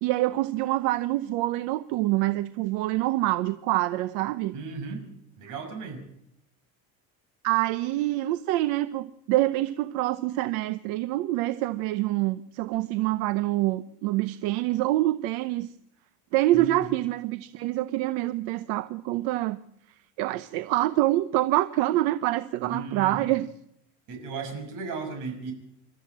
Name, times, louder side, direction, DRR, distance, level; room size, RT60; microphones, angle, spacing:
voice 1, 0.0-4.5 7.4-15.7 16.3-19.6 20.2-23.5, right 16 dB, 75° right, 0.9 m, -26 dB
voice 2, 4.5-5.0 5.4-6.0 16.5-16.9 22.6-23.3 24.1-25.5, right 4 dB, 55° right, 6.3 m, -35 dB
28.5 x 13.0 x 7.4 m
cardioid pair, 160°, 37 cm